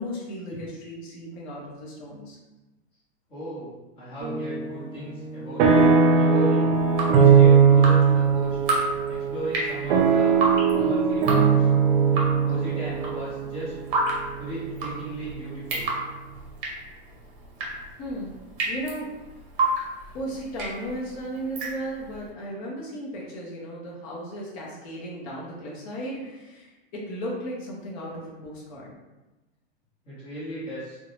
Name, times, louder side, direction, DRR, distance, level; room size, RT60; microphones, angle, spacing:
voice 1, 0.0-2.4 18.0-18.3 18.7-19.1 20.1-29.0, equal, 35° left, -4 dB, 0.6 m, -35 dB
voice 2, 3.3-5.7 6.2-6.7 7.1-8.6 9.1-10.4 10.7-11.7 12.4-13.7 14.3-15.9 30.0-31.0, right 1 dB, 15° left, -15 dB, 1.0 m, -36 dB
sound 1, 4.2-4.8 5.1-15.1, right 6 dB, 90° right, 0.5 m, -20 dB
Drip, 6.7-22.2, right 2 dB, 55° right, 0.7 m, -31 dB
2.5 x 2.1 x 2.9 m, 1.1 s
supercardioid pair, 175°, 32 cm